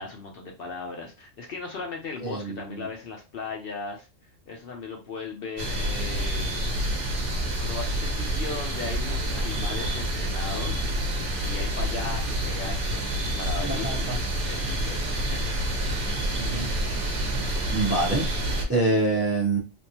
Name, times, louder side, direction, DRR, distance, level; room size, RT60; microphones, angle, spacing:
voice 1, 0.0-4.1 4.5-6.7 7.6-14.2 14.5-15.4, left 4 dB, 55° left, 0 dB, 0.7 m, -37 dB
voice 2, 2.2-2.6 13.6-14.2 16.3-16.7 17.7-18.3 18.7-19.6, right 2 dB, 15° right, -2 dB, 0.6 m, -25 dB
sound 1, 5.6-18.6, right 1 dB, 50° right, 0.9 m, -28 dB
3.5 x 2.4 x 2.8 m, 0.30 s
omnidirectional pair, 1.3 m